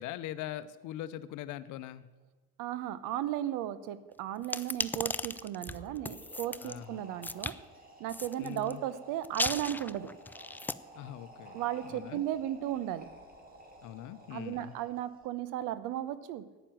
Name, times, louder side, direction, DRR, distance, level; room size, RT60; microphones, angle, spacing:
voice 1, 0.0-2.1 6.6-7.1 8.4-8.8 11.0-12.2 13.8-14.8, left 12 dB, 70° left, 14 dB, 0.8 m, -42 dB
voice 2, 2.6-7.5 8.0-10.1 11.5-13.0 14.3-16.4, right 12 dB, 75° right, 15 dB, 0.9 m, -35 dB
sound 1, 4.4-6.8 7.2-7.6 8.1-8.7 9.2-10.7, left 2 dB, 5° left, 0.3 m, -36 dB
sound 2, 5.6-15.2, right 1 dB, 30° right, 3.0 m, -53 dB
10.0 x 9.1 x 7.5 m, 1.3 s
supercardioid pair, 85°, 32 cm